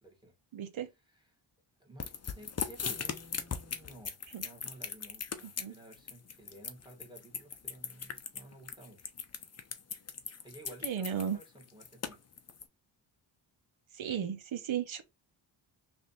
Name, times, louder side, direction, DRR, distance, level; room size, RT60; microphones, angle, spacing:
voice 1, 0.0-0.3 1.8-9.1 10.4-12.2, right 1 dB, 10° right, 1.6 m, -54 dB
voice 2, 0.5-0.9 4.3-4.4 5.4-5.8 10.8-11.4 13.9-15.0, right 8 dB, 70° right, 0.9 m, -35 dB
sound 1, 2.0-12.6, left 6 dB, 35° left, 0.6 m, -39 dB
3.2 x 2.7 x 4.1 m
cardioid pair, 80°, 48 cm